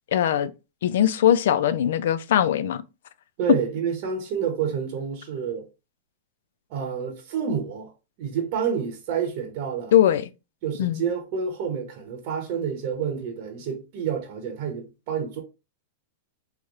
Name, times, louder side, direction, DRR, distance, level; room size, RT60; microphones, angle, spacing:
voice 1, 0.1-0.5 0.8-2.8 9.9-10.2 10.8-11.0, left 10 dB, 75° left, 0.3 m, -20 dB
voice 2, 3.4-5.6 6.7-7.9 8.2-9.9 10.6-15.4, right 7 dB, 50° right, 0.8 m, -28 dB
3.2 x 3.0 x 2.4 m
hypercardioid pair, 135°, 0 cm